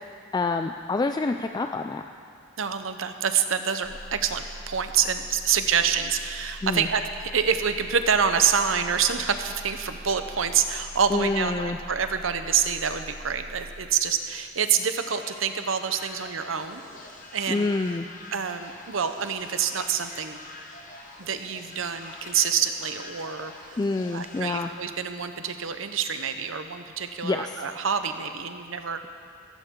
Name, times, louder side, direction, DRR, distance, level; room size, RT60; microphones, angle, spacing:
voice 1, 0.3-2.0 6.6-6.9 11.1-11.8 17.5-18.1 23.8-24.7 27.2-27.7, left 3 dB, 20° left, 6 dB, 0.3 m, -27 dB
voice 2, 2.6-7.0 7.3-16.8 17.3-17.7 18.3-20.4 21.2-23.8 24.1-29.0, right 7 dB, 85° right, 8 dB, 0.8 m, -27 dB
sound 1, 3.8-13.8, right 1 dB, 30° right, 4.0 m, -43 dB
sound 2, 15.1-24.6, left 2 dB, 45° left, 1.4 m, -45 dB
15.5 x 15.5 x 3.8 m, 2.3 s
head